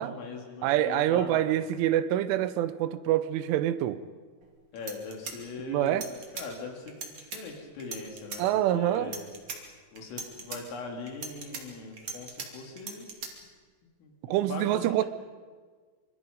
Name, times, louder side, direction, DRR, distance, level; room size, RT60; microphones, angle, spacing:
voice 1, 0.0-1.5 4.7-8.4 8.7-9.3 9.9-13.1 14.0-15.1, left 4 dB, 80° left, 5.7 m, -41 dB
voice 2, 0.6-4.0 5.7-6.1 8.4-9.1 14.3-15.0, right 12 dB, 80° right, 3.2 m, -26 dB
sound 1, 4.4-4.5 4.8-6.5 6.9-7.4 7.8-8.4 8.9-9.6 10.0-10.6 11.1-12.5 12.8-13.3, right 5 dB, 40° right, 3.2 m, -39 dB
26.0 x 25.0 x 5.4 m
omnidirectional pair, 5.7 m